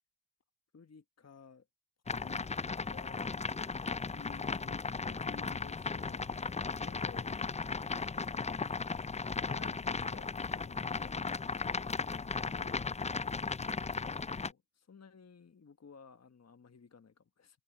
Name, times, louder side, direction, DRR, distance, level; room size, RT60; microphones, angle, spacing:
voice 1, 0.7-1.7 2.2-7.4 9.3-11.6 12.1-12.8 13.8-17.6, left 5 dB, 35° left, 1.3 m, -55 dB
sound 1, 2.1-14.5, left 4 dB, 15° left, 0.5 m, -36 dB
open air
supercardioid pair, 45°, 46 cm